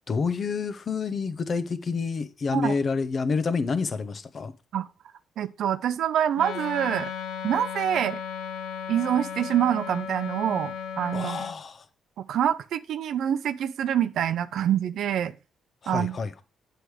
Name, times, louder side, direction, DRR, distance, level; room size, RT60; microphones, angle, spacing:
voice 1, 0.1-4.5 11.1-11.9 15.8-16.4, left 4 dB, 45° left, 0.8 m, -28 dB
voice 2, 5.4-7.1 7.4-8.2 8.9-11.4 12.2-15.3 15.9-16.2, right 10 dB, 75° right, 0.4 m, -26 dB
Wind instrument woodwind instrument, 6.3-11.6, left 7 dB, 90° left, 0.8 m, -35 dB
7.8 x 4.9 x 4.8 m
cardioid pair, 90°, 0 cm